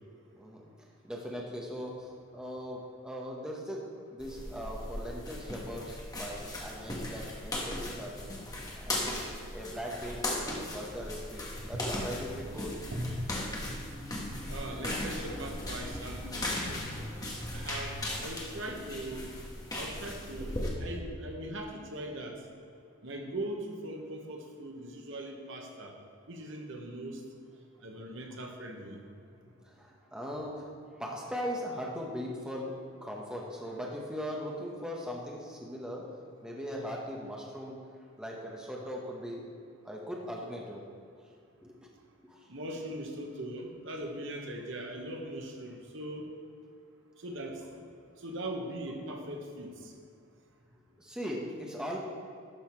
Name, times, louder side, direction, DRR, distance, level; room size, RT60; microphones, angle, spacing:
voice 1, 1.0-8.3 8.7-9.2 9.5-12.8 29.6-36.1 36.4-37.8 38.2-39.4 39.8-40.8 41.6-41.9 42.2-42.5 51.0-52.0, equal, 5° right, -2 dB, 0.9 m, -39 dB
sound 1, 4.2-20.7, left 1 dB, 15° left, 1.2 m, -37 dB
voice 2, 11.6-12.1 12.9-13.3 13.9-14.1 14.5-17.0 17.5-19.3 19.7-22.4 23.0-25.9 26.3-27.2 27.8-29.0 42.5-46.3 47.2-47.6 48.2-49.9, right 1 dB, 60° right, 2 dB, 1.1 m, -40 dB
12.0 x 5.6 x 4.4 m, 2.3 s
head